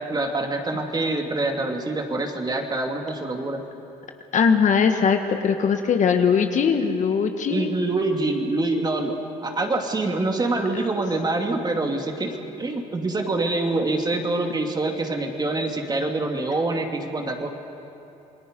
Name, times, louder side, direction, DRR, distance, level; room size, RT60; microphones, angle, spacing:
voice 1, 0.0-3.6 7.5-17.5, right 2 dB, 25° right, 3 dB, 2.5 m, -25 dB
voice 2, 4.3-7.7 10.7-10.8, left 6 dB, 50° left, 6 dB, 1.5 m, -20 dB
28.0 x 20.5 x 5.3 m, 2.8 s
supercardioid pair, 85°, 16 cm